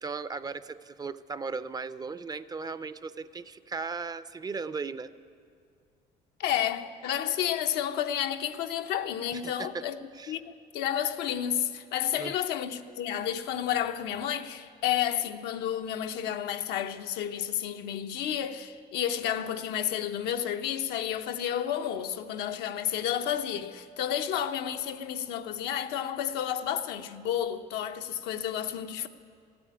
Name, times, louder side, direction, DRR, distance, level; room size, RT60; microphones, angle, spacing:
voice 1, 0.0-5.1 9.3-9.9 10.1-10.4 12.2-12.3, right 4 dB, 25° right, 0.4 m, -37 dB
voice 2, 6.4-29.1, left 10 dB, 85° left, 0.7 m, -31 dB
15.0 x 8.7 x 10.0 m
cardioid pair, 110°, 17 cm